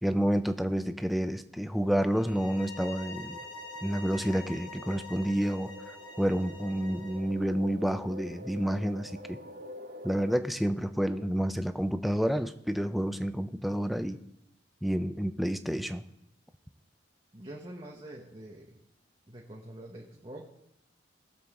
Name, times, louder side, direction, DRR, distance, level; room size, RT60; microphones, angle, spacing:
voice 1, 0.0-3.4 3.8-5.7 6.2-9.4 10.0-14.2 14.8-16.0, equal, ahead, 9 dB, 0.4 m, -29 dB
sound 1, 1.7-10.4, left 1 dB, 45° right, 0.8 m, -48 dB
sound 2, 2.1-7.3, left 2 dB, 45° left, 3.4 m, -46 dB
voice 2, 17.3-18.8 19.3-20.5, right 1 dB, 30° right, -2 dB, 1.1 m, -45 dB
20.0 x 7.3 x 3.7 m, 0.79 s
head